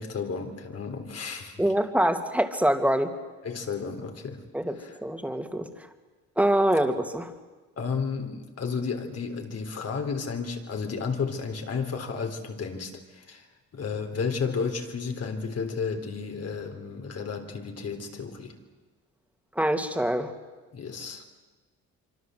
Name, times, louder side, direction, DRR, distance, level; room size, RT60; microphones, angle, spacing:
voice 1, 0.0-1.6 3.4-4.4 4.8-5.0 7.8-13.5 13.7-18.5 20.7-21.2, left 5 dB, 55° left, 5 dB, 3.7 m, -32 dB
voice 2, 1.6-3.1 4.5-4.7 5.0-5.7 6.4-7.3 19.6-20.3, right 1 dB, 5° right, 6 dB, 2.5 m, -24 dB
25.5 x 25.0 x 7.9 m, 1.3 s
cardioid pair, 90°, 30 cm